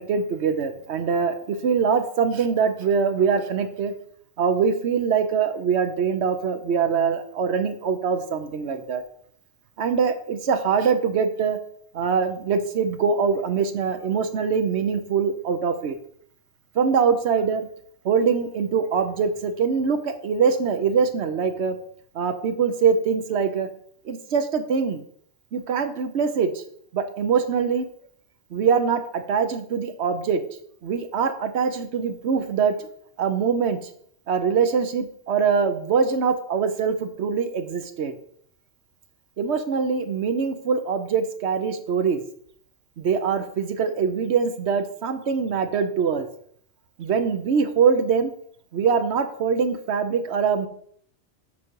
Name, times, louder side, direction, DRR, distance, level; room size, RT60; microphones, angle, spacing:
voice 1, 0.0-3.9 4.4-9.0 9.8-11.6 11.9-16.0 16.7-17.7 18.0-21.8 22.1-23.7 24.0-25.0 25.5-26.6 26.9-27.9 28.5-30.4 30.8-32.9 33.2-33.8 34.3-38.1 39.4-42.2 43.0-46.3 47.0-48.3 48.7-50.7, right 6 dB, 75° right, 8 dB, 1.1 m, -23 dB
7.5 x 4.9 x 4.6 m, 0.64 s
omnidirectional pair, 1.2 m